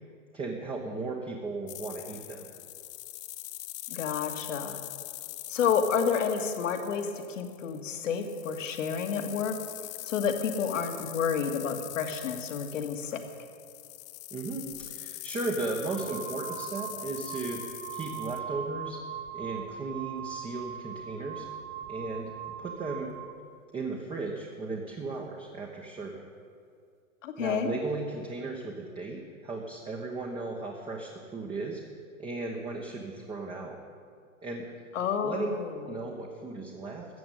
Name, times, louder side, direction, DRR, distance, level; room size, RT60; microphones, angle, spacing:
voice 1, 0.3-2.5 14.3-17.6 17.9-19.0 19.3-21.4 21.9-23.1 23.7-26.2 27.4-31.8 32.2-33.8 34.4-34.7 35.2-35.5 35.8-37.1, right 3 dB, 15° right, 0 dB, 1.1 m, -36 dB
sound 1, 1.7-18.4, left 17 dB, 30° left, 0.6 m, -43 dB
voice 2, 3.9-4.8 5.5-9.6 10.0-13.2 27.2-27.7 34.9-35.9, left 7 dB, 70° left, 6 dB, 1.9 m, -30 dB
sound 2, 14.7-14.9 15.7-23.4, right 9 dB, 50° right, 0.8 m, -40 dB
14.0 x 7.9 x 9.1 m, 2.3 s
hypercardioid pair, 130°, 40 cm